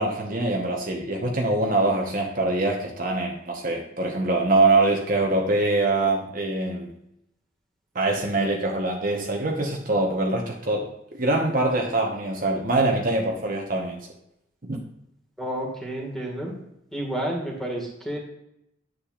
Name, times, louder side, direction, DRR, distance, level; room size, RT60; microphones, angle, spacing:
voice 1, 0.0-6.9 7.9-14.1 14.7-14.8, right 2 dB, 40° right, 0 dB, 1.0 m, -24 dB
voice 2, 15.4-16.6 16.9-18.2, right 1 dB, ahead, -1 dB, 1.7 m, -30 dB
10.0 x 7.8 x 2.4 m, 0.81 s
head